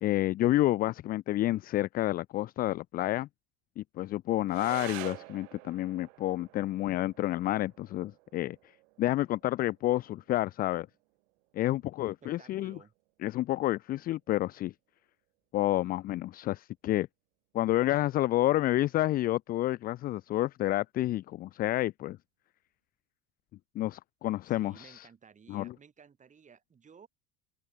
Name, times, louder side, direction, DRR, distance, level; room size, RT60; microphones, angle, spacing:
voice 1, 0.0-3.3 3.8-8.6 9.0-10.9 11.5-12.8 13.2-14.7 15.5-17.1 17.5-22.2 23.8-25.1 25.5-25.7, left 15 dB, 25° left, 0.4 m, -29 dB
sound 1, 4.5-13.5, right 24 dB, 90° right, 6.6 m, -49 dB
voice 2, 11.7-12.9 24.4-27.1, right 6 dB, 20° right, 8.0 m, -56 dB
open air
cardioid pair, 160°, 38 cm